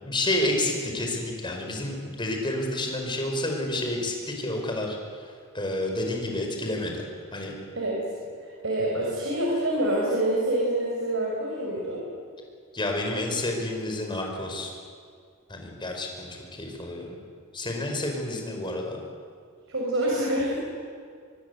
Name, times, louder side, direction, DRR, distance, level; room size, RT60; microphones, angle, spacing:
voice 1, 0.0-5.0 5.5-7.1 7.3-7.5 12.7-14.7 15.5-17.2 17.5-19.0, left 1 dB, 25° left, 2 dB, 5.1 m, -29 dB
voice 2, 8.6-12.0 19.7-20.6, right 1 dB, 65° right, -3 dB, 5.9 m, -26 dB
26.0 x 22.5 x 8.2 m, 2.2 s
head